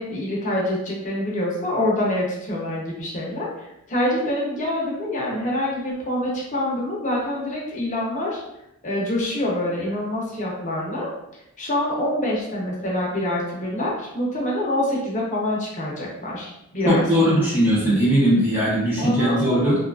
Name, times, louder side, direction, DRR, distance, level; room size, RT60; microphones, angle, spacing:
voice 1, 0.0-8.4 8.8-11.1 11.6-17.5 19.0-19.7, left 1 dB, 35° left, -4 dB, 0.6 m, -26 dB
voice 2, 16.9-19.8, equal, 10° right, -7 dB, 0.5 m, -19 dB
2.8 x 2.3 x 2.3 m, 0.83 s
head